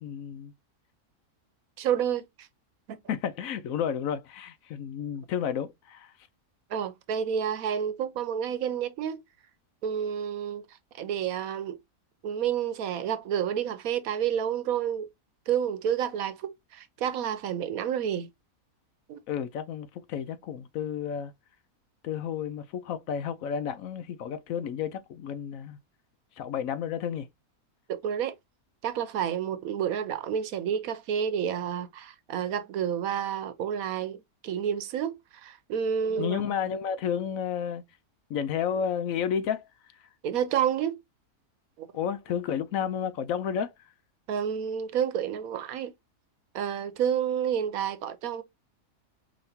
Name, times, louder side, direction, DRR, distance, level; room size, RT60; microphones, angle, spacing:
voice 1, 0.0-0.5 3.1-6.1 19.3-21.3 22.0-25.8 26.4-27.3 36.2-37.8 38.3-39.6 41.9-43.7, left 8 dB, 70° left, 0.9 m, -31 dB
voice 2, 1.8-2.5 6.7-9.2 9.8-10.6 11.0-11.8 12.2-15.1 15.5-18.3 19.1-19.2 27.9-28.3 28.8-36.5 40.2-41.0 41.8-41.9 44.3-45.9 46.5-48.4, right 8 dB, 70° right, 1.0 m, -29 dB
5.1 x 2.8 x 2.7 m
omnidirectional pair, 1.6 m